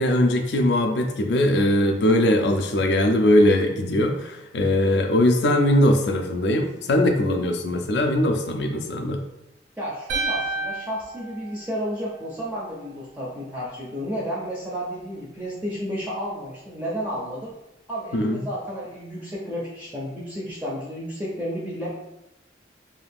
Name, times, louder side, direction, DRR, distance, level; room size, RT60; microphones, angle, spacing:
voice 1, 0.0-9.2 18.1-18.4, left 1 dB, 65° left, 5 dB, 0.4 m, -20 dB
voice 2, 9.8-17.5 17.9-22.0, equal, 10° right, -5 dB, 0.4 m, -32 dB
sound 1, 10.1-12.4, right 2 dB, 80° right, 0.6 m, -30 dB
2.7 x 2.4 x 3.4 m, 0.89 s
head